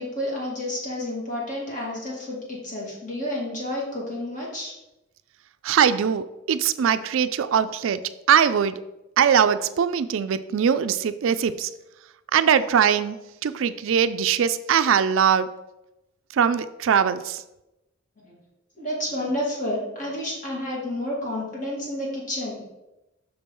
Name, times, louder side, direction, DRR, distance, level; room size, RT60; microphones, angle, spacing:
voice 1, 0.0-4.7 18.2-18.4 18.8-22.7, left 1 dB, 40° left, -4 dB, 2.6 m, -30 dB
voice 2, 5.6-8.8 9.2-11.7 12.3-15.5 16.3-17.4, right 8 dB, 75° right, 13 dB, 0.4 m, -21 dB
6.6 x 4.4 x 5.4 m, 0.95 s
head